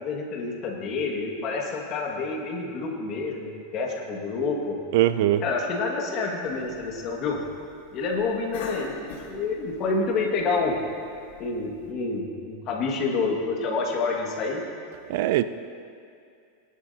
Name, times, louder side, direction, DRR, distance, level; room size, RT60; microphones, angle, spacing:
voice 1, 0.0-4.7 5.4-7.4 7.9-9.0 9.3-10.8 11.4-14.6, left 4 dB, 35° left, -1 dB, 1.9 m, -28 dB
voice 2, 4.9-5.4 15.1-15.4, right 13 dB, 60° right, 13 dB, 0.4 m, -21 dB
Cough, 6.5-11.9, left 4 dB, 75° left, 1.7 m, -45 dB
19.0 x 11.0 x 2.8 m, 2.4 s
supercardioid pair, 155°, 0 cm